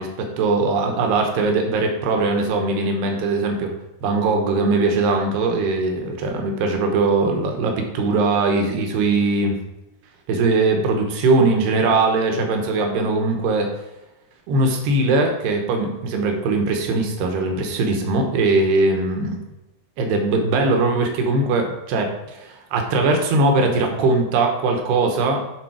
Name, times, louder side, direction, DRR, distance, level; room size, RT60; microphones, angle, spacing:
voice 1, 0.0-3.7 4.0-9.6 10.3-13.7 14.5-19.4 20.0-25.4, right 3 dB, 80° right, 3 dB, 3.1 m, -20 dB
10.5 x 3.8 x 4.8 m, 0.94 s
omnidirectional pair, 4.6 m